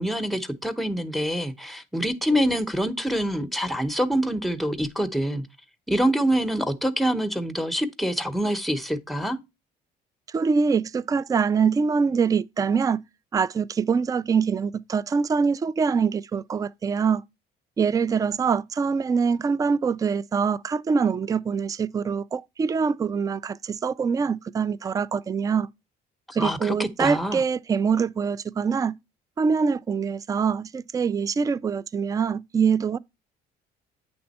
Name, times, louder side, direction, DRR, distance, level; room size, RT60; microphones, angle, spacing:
voice 1, 0.0-5.4 5.9-9.4 26.4-27.4, equal, ahead, 0.8 m, -25 dB
voice 2, 10.3-13.0 13.3-17.2 17.8-25.7 26.3-29.0 29.4-33.0, right 5 dB, 20° right, 0.3 m, -24 dB
8.6 x 3.5 x 4.0 m
cardioid pair, 110°, 17 cm